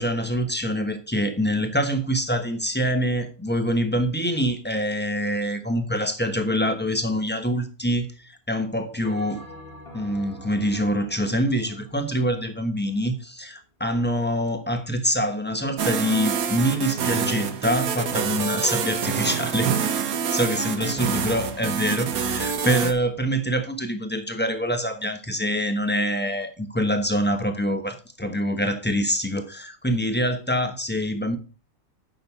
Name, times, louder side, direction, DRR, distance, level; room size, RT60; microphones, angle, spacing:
voice 1, 0.0-9.4 9.9-19.8 20.1-31.4, equal, 10° left, 1.0 m, -25 dB
Bell, 9.0-13.6, equal, 35° left, 2.6 m, -46 dB
sound 1, 15.8-22.9, right 7 dB, 70° right, 1.4 m, -26 dB
9.1 x 6.2 x 4.6 m
omnidirectional pair, 1.6 m